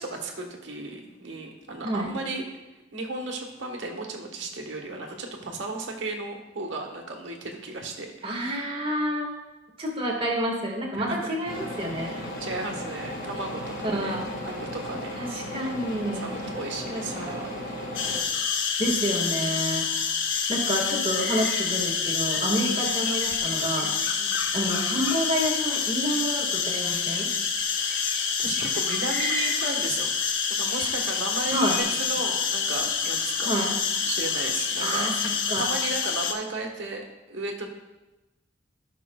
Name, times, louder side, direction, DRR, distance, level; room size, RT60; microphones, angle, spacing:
voice 1, 0.0-2.4 2.7-8.5 10.9-11.3 11.9-14.2 14.4-15.3 16.2-17.5 24.2-24.4 27.7-33.6 34.0-35.1 35.6-37.7, right 2 dB, 70° right, 2 dB, 1.3 m, -35 dB
voice 2, 8.2-9.3 9.8-12.2 13.9-14.3 15.2-16.3 16.9-17.4 18.8-19.9 20.5-23.9 24.5-27.3 31.5-31.8 33.4-33.8 34.8-35.7, equal, 30° right, 0 dB, 1.7 m, -29 dB
sound 1, 11.4-18.2, left 1 dB, 55° left, 2.3 m, -35 dB
sound 2, 18.0-36.3, left 6 dB, 80° left, 0.8 m, -27 dB
sound 3, 21.1-26.3 26.7-30.5 30.7-31.8, equal, 5° left, 1.7 m, -39 dB
15.5 x 6.0 x 2.3 m, 1.1 s
head